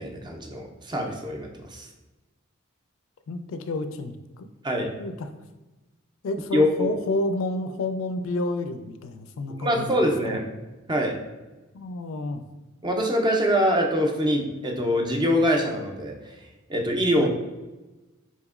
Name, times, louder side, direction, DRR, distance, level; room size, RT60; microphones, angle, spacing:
voice 1, 0.0-1.9 4.6-4.9 6.5-6.9 9.6-10.5 10.9-11.2 12.8-16.1 16.7-17.3, equal, 20° right, 2 dB, 0.5 m, -24 dB
voice 2, 3.3-4.5 5.0-5.3 6.2-10.0 10.3-10.4 11.7-12.4 17.2-17.3, left 2 dB, 65° left, 8 dB, 0.3 m, -30 dB
4.2 x 2.9 x 2.3 m, 1.1 s
head